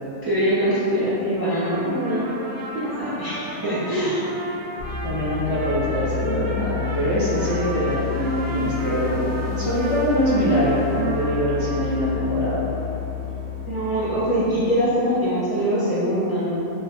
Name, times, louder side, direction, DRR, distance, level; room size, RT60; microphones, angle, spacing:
voice 1, 0.2-2.3 2.7-4.3 13.6-16.5, equal, 25° right, -12 dB, 0.5 m, -23 dB
Trumpet, 1.5-12.2, right 1 dB, 60° right, 0.8 m, -36 dB
sound 1, 4.8-14.6, left 8 dB, 70° left, 1.2 m, -30 dB
voice 2, 5.0-12.6, equal, 30° left, -11 dB, 0.5 m, -23 dB
5.4 x 2.5 x 2.2 m, 3.0 s
omnidirectional pair, 1.5 m